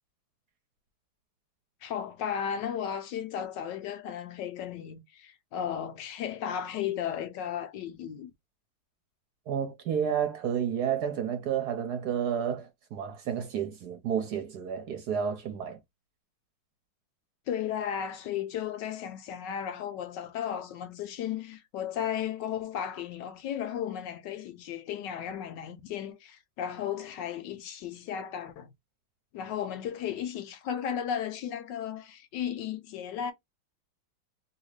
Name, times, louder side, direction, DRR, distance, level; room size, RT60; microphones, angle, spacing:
voice 1, 1.8-8.3 17.5-28.7 29.3-33.3, left 9 dB, 75° left, 1.2 m, -35 dB
voice 2, 9.5-15.8, right 8 dB, 65° right, 1.1 m, -31 dB
2.8 x 2.8 x 3.1 m
omnidirectional pair, 2.1 m